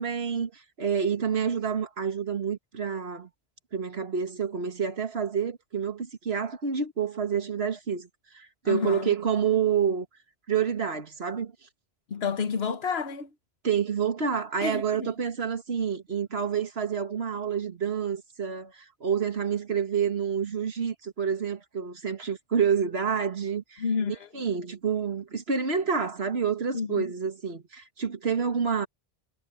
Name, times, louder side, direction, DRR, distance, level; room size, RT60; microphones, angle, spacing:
voice 1, 0.0-3.3 3.7-8.1 8.3-10.1 10.5-11.5 13.6-23.8 24.3-28.9, right 7 dB, 85° right, 2.0 m, -28 dB
voice 2, 8.6-9.1 12.1-13.3 14.6-15.1 23.8-24.4 26.7-27.0, left 5 dB, 80° left, 1.4 m, -30 dB
omnidirectional pair, 1.0 m